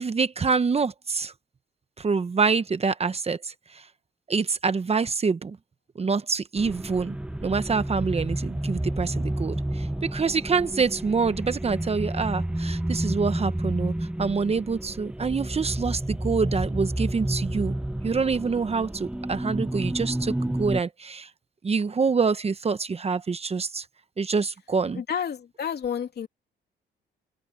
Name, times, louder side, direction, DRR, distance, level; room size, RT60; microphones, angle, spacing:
voice 1, 0.0-1.3 2.0-3.8 4.3-5.6 6.0-7.2 7.4-13.9 14.2-17.8 18.0-21.3 21.6-23.8 24.2-25.0, right 5 dB, 30° right, 1.0 m, -26 dB
sound 1, 6.6-20.8, right 1 dB, 5° right, 0.7 m, -30 dB
voice 2, 24.9-26.3, left 8 dB, 55° left, 3.0 m, -30 dB
open air
cardioid pair, 90°, 20 cm